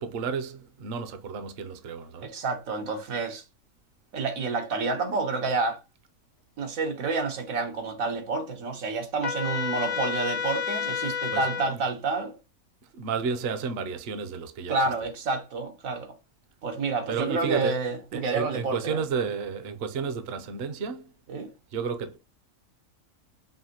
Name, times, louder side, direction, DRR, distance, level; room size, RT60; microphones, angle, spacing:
voice 1, 0.0-2.3 11.3-11.8 12.8-14.9 17.1-17.8 18.1-21.1 21.7-22.2, right 6 dB, 60° right, 0.7 m, -32 dB
voice 2, 2.2-3.4 4.1-5.8 6.6-12.4 14.7-16.1 16.6-19.0 21.3-21.5, right 3 dB, 85° right, 1.4 m, -29 dB
Trumpet, 9.2-11.7, left 7 dB, 75° left, 1.3 m, -30 dB
5.5 x 2.5 x 2.8 m
omnidirectional pair, 1.4 m